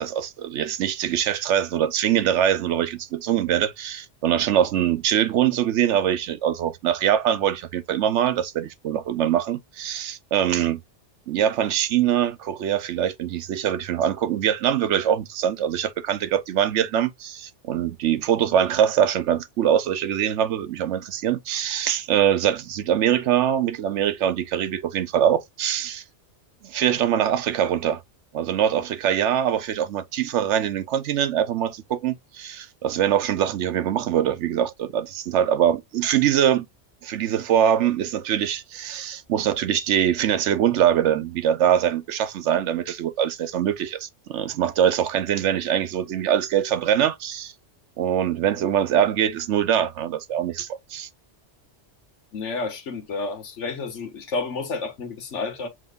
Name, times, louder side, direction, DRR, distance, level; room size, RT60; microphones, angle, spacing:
voice 1, 0.0-10.8 11.3-26.0 26.6-28.0 28.3-36.7 37.0-47.5 48.0-51.1, right 10 dB, 80° right, 1.0 m, -23 dB
voice 2, 52.3-55.7, left 3 dB, 85° left, 1.5 m, -30 dB
7.4 x 2.9 x 2.4 m
omnidirectional pair, 1.2 m